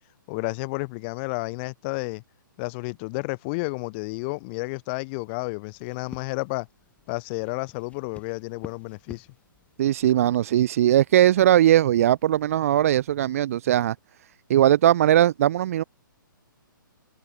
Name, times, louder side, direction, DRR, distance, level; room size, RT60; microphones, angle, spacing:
voice 1, 0.3-2.2 2.6-6.7 7.1-9.3, left 29 dB, 30° left, 2.3 m, -31 dB
sound 1, 5.7-13.4, left 6 dB, 10° left, 3.7 m, -50 dB
voice 2, 9.8-14.0 14.5-15.8, right 12 dB, 40° right, 0.6 m, -19 dB
figure-of-eight pair, 125°, 11 cm